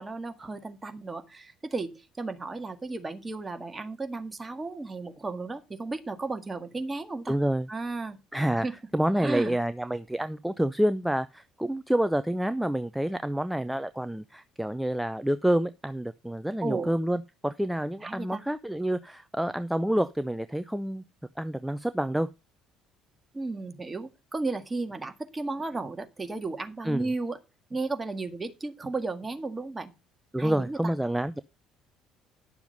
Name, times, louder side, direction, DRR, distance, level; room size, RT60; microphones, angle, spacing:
voice 1, 0.0-7.4 7.7-8.2 8.5-8.7 9.2-9.6 16.6-16.9 18.0-18.4 23.3-27.4 27.7-29.9 30.4-30.9, right 3 dB, 20° right, 7 dB, 1.8 m, -34 dB
voice 2, 7.3-7.7 8.3-8.7 8.9-21.0 21.4-22.3 26.8-27.0 30.3-31.4, right 1 dB, 5° right, 13 dB, 0.6 m, -28 dB
11.0 x 7.0 x 5.3 m, 0.28 s
figure-of-eight pair, 55°, 0 cm